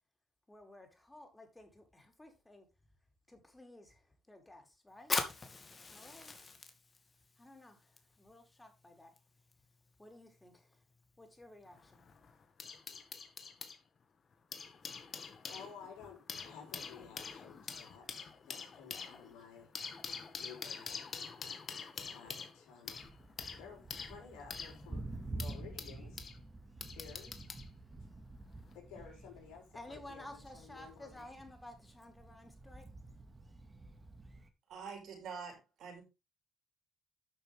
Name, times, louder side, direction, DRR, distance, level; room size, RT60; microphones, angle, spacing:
voice 1, 0.5-2.7 3.3-5.1 5.9-6.5 7.4-9.1 10.0-10.8 11.2-12.0 29.7-32.9, left 1 dB, 15° left, 4.6 m, -54 dB
Fire, 5.0-12.2, left 3 dB, 30° left, 2.5 m, -44 dB
sound 1, 11.7-13.8 14.3-26.4 26.8-27.7 28.6-28.8, left 5 dB, 50° left, 2.0 m, -46 dB
voice 2, 15.5-18.1 18.4-19.7 20.4-21.1 22.1-23.1 23.6-25.0 25.3-26.3 26.9-27.4 28.7-31.3, left 6 dB, 85° left, 5.7 m, -54 dB
Thunder, 22.9-34.5, right 2 dB, 25° right, 2.2 m, -49 dB
voice 3, 34.7-36.0, right 5 dB, 70° right, 6.3 m, -46 dB
12.0 x 6.9 x 3.7 m
supercardioid pair, 65°, 0 cm